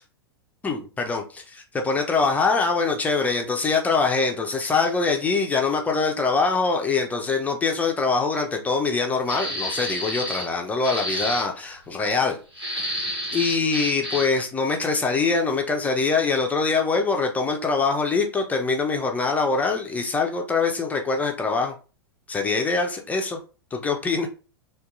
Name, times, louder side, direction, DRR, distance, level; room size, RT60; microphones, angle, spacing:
voice 1, 0.6-12.4 12.8-21.7 22.3-23.4 23.7-24.3, left 4 dB, 10° left, 0.4 m, -24 dB
sound 1, 9.3-10.5 10.8-11.4 12.5-14.4, equal, 90° right, 1.2 m, -29 dB
2.6 x 2.2 x 2.4 m
figure-of-eight pair, 100°, 13 cm